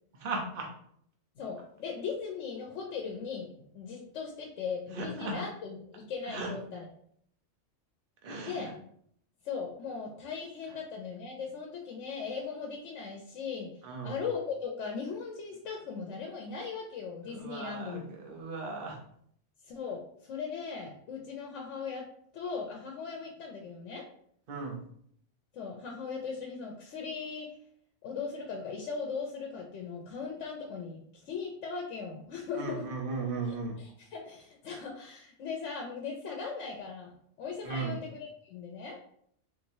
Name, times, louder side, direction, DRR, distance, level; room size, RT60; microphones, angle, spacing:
voice 1, 0.2-0.7 4.9-5.3 6.3-6.5 8.2-8.6 13.8-14.2 17.3-19.0 24.5-24.8 32.5-33.8 37.6-38.0, right 3 dB, 50° right, 0 dB, 0.9 m, -36 dB
voice 2, 1.4-3.5 3.7-6.9 8.4-8.7 9.4-13.7 14.0-18.1 19.6-22.1 22.3-24.1 25.5-27.6 28.0-33.0 33.5-37.1 37.4-39.0, left 5 dB, 75° left, 1 dB, 0.9 m, -38 dB
4.0 x 2.9 x 2.6 m, 0.66 s
omnidirectional pair, 1.3 m